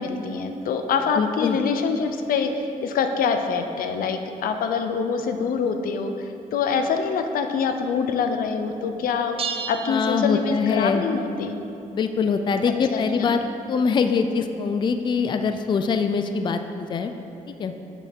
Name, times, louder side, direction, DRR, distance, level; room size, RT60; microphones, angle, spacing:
voice 1, 0.0-11.6 12.9-13.4, left 5 dB, 90° left, 7 dB, 0.6 m, -25 dB
voice 2, 1.2-1.6 9.9-11.0 11.9-13.4 13.7-17.1 17.5-17.7, left 5 dB, 35° left, 7 dB, 0.3 m, -23 dB
sound 1, 9.4-11.0, right 6 dB, 40° right, 0.5 m, -33 dB
7.3 x 6.6 x 4.3 m, 2.8 s
wide cardioid pair, 145°, 14 cm